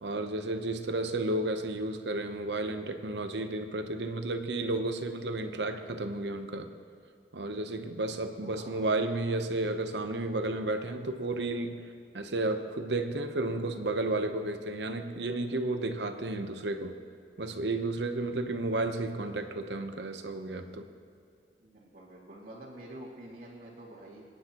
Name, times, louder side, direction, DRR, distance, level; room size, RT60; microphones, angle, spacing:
voice 1, 0.0-6.7 7.3-11.8 12.1-16.9 17.4-20.9, right 2 dB, 80° right, 7 dB, 0.9 m, -32 dB
voice 2, 8.4-8.9 21.6-24.3, right 1 dB, 60° right, -8 dB, 2.2 m, -48 dB
27.0 x 10.5 x 3.0 m, 2.4 s
head